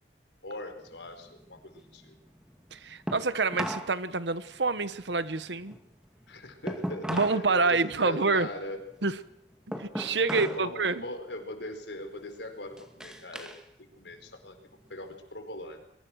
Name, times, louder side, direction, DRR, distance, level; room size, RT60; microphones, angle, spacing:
voice 1, 0.4-2.1 6.3-8.8 9.7-9.8 10.3-13.5 14.0-14.6 14.9-15.8, left 1 dB, 90° left, 6 dB, 4.8 m, -40 dB
sound 1, 0.8-4.0 4.3-7.5 7.8-10.7 11.1-11.5 12.0-13.6 14.0-15.2, equal, 5° right, 2.3 m, -39 dB
voice 2, 2.7-5.8 7.1-8.5 9.0-9.2 9.8-11.0, right 3 dB, 85° right, 14 dB, 1.2 m, -27 dB
24.5 x 23.0 x 6.4 m, 0.74 s
head